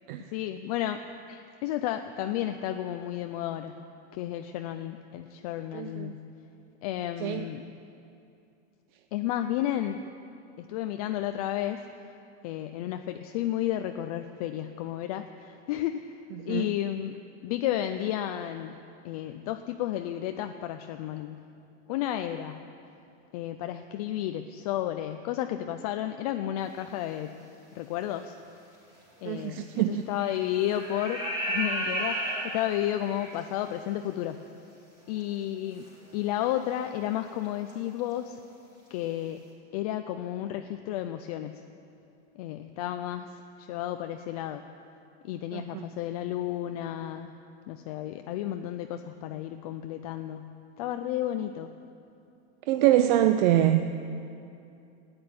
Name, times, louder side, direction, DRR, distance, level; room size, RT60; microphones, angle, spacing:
voice 1, 0.3-1.0 1.3-3.8 4.1-6.3 6.8-7.7 9.1-10.1 10.6-11.9 12.4-16.2 16.4-17.1 17.4-18.8 19.0-21.4 21.9-22.6 23.3-27.4 27.7-28.4 29.2-34.4 35.1-35.9 36.1-38.4 38.9-39.4 39.7-41.6 42.4-44.6 45.2-47.3 47.7-51.7, left 12 dB, 35° left, 7 dB, 0.4 m, -32 dB
voice 2, 5.7-6.2 7.2-7.4 16.4-16.6 29.2-30.1 45.5-45.9 52.7-53.9, right 12 dB, 45° right, 9 dB, 0.5 m, -25 dB
sound 1, 27.8-28.0 29.2-29.3 30.1-30.4 30.7-33.4 35.2-35.3 35.8-35.9 36.9-37.2 37.4-37.7 38.0-38.1, right 1 dB, 10° right, 3.2 m, -32 dB
14.0 x 9.6 x 9.5 m, 2.7 s
supercardioid pair, 165°, 35 cm